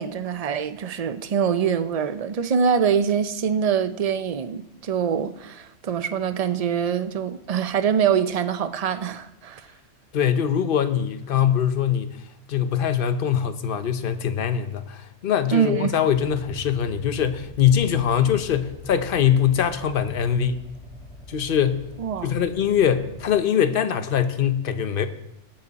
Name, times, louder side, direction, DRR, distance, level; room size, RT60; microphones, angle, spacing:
voice 1, 0.0-9.6 15.5-16.0 22.0-22.3, right 7 dB, 40° right, 0.6 m, -24 dB
voice 2, 10.1-12.2 12.5-20.6 21.3-21.9 22.2-25.1, left 9 dB, 50° left, 1.0 m, -22 dB
sound 1, 16.1-23.3, left 1 dB, 85° left, 2.1 m, -43 dB
19.0 x 7.8 x 4.1 m
omnidirectional pair, 1.2 m